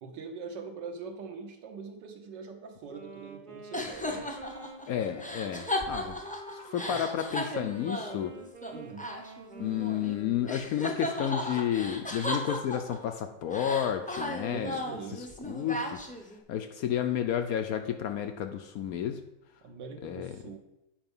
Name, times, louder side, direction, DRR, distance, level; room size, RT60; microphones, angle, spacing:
voice 1, 0.0-4.3 6.8-7.1 8.7-9.0 14.5-15.2 19.6-20.6, right 5 dB, 85° right, 5 dB, 1.7 m, -43 dB
Wind instrument woodwind instrument, 2.9-10.9, right 4 dB, 40° right, 0.7 m, -48 dB
sound 1, 3.7-10.2 10.5-13.1 13.5-16.4, left 1 dB, 10° left, 0.3 m, -36 dB
voice 2, 4.9-6.2 6.5-8.3 9.6-14.8 15.4-16.1 16.5-19.2 20.0-20.4, left 9 dB, 70° left, 7 dB, 0.9 m, -31 dB
8.9 x 4.6 x 5.4 m, 0.91 s
omnidirectional pair, 1.9 m